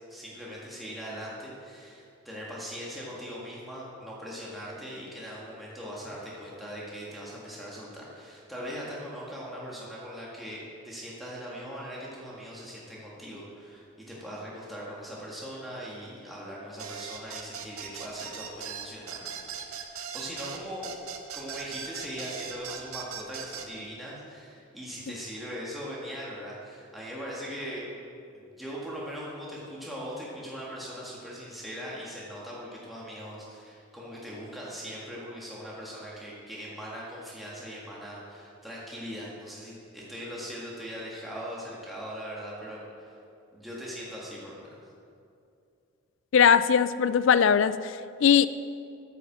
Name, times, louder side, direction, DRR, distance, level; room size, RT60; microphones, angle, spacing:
voice 1, 0.1-21.0 21.3-27.9 28.3-43.2 43.5-44.9, equal, ahead, -6 dB, 1.7 m, -40 dB
sound 1, 16.8-23.7, right 7 dB, 80° right, 0.9 m, -39 dB
voice 2, 46.3-48.5, left 7 dB, 60° left, 14 dB, 0.3 m, -20 dB
9.3 x 6.8 x 7.2 m, 2.5 s
head